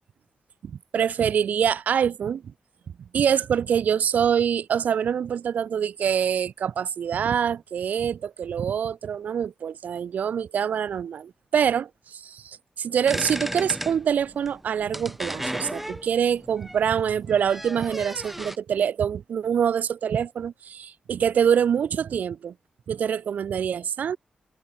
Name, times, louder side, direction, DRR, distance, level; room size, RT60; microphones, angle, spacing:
voice 1, 0.6-2.5 3.1-22.5 22.9-24.2, right 8 dB, 80° right, 2.6 m, -25 dB
sound 1, 13.1-18.6, right 1 dB, 5° right, 2.5 m, -35 dB
wide cardioid pair, 100°, 3 cm